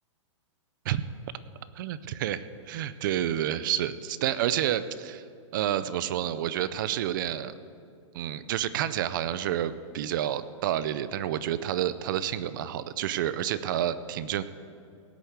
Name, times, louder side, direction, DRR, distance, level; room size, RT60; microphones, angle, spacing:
voice 1, 1.8-5.2 5.5-7.5 8.1-14.4, right 11 dB, 40° right, 15 dB, 0.5 m, -29 dB
17.0 x 6.6 x 8.0 m, 2.4 s
hypercardioid pair, 165°, 17 cm